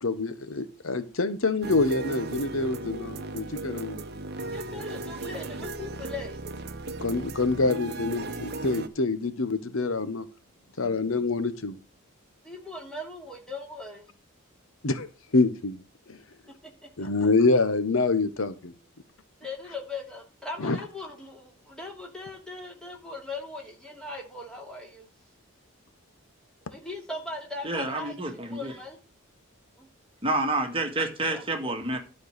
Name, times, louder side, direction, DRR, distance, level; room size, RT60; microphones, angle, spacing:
voice 1, 0.0-4.0 7.0-10.3 10.8-11.8 14.8-15.1 15.3-16.2 17.0-18.7 20.6-20.8, left 3 dB, 70° left, 0.9 m, -26 dB
sound 1, 1.6-8.9, right 2 dB, 50° right, 0.9 m, -36 dB
voice 2, 4.5-6.4 12.4-14.1 16.6-17.3 19.4-25.1 26.7-28.2 28.5-29.0 29.8-29.9 31.3-31.8, left 2 dB, 5° left, 2.7 m, -39 dB
voice 3, 27.6-28.7 30.2-32.0, right 2 dB, 25° right, 1.7 m, -28 dB
12.0 x 4.6 x 6.6 m
head